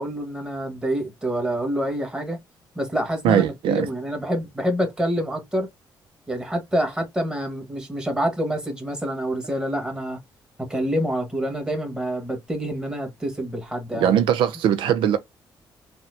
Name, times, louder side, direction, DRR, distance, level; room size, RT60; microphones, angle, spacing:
voice 1, 0.0-2.4 2.7-5.7 6.3-10.2 10.7-14.1, equal, 10° right, 1.4 m, -27 dB
voice 2, 3.2-3.9 13.9-15.2, right 9 dB, 85° right, 0.4 m, -20 dB
4.1 x 2.1 x 2.6 m
cardioid pair, 90°, 8 cm